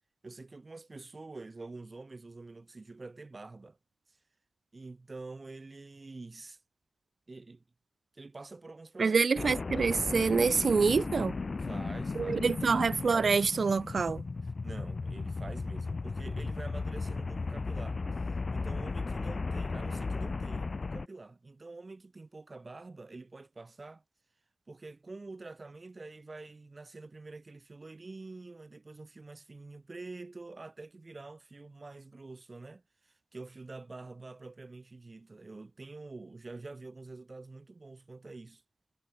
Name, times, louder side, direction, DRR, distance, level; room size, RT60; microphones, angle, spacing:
voice 1, 0.2-3.8 4.7-6.6 7.3-7.6 8.1-9.3 11.6-12.4 12.7-12.8 14.4-24.0 24.7-38.6, right 3 dB, 40° right, 1.7 m, -47 dB
voice 2, 9.0-11.4 12.2-14.2, right 5 dB, 70° right, 0.3 m, -26 dB
sound 1, 9.4-21.1, left 3 dB, 50° left, 0.4 m, -35 dB
wide cardioid pair, 95°, 0 cm